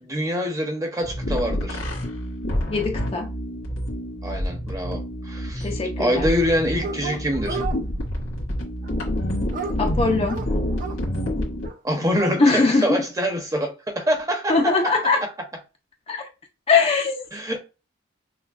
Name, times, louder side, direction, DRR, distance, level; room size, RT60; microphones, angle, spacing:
voice 1, 0.0-1.8 4.2-5.7 6.0-7.6 11.8-14.7 15.2-15.3 17.3-17.6, equal, 15° right, 0.7 m, -25 dB
sound 1, 1.0-11.7, equal, 80° left, 1.7 m, -28 dB
voice 2, 2.7-3.3 5.6-6.3 9.8-10.4 12.4-13.0 14.5-15.2 16.1-16.3 16.7-17.2, left 3 dB, 30° left, 0.4 m, -21 dB
Dog, 6.8-7.8 8.8-11.0 11.6-11.8 12.0-12.8, right 4 dB, 40° right, 0.4 m, -33 dB
6.0 x 2.2 x 2.3 m
head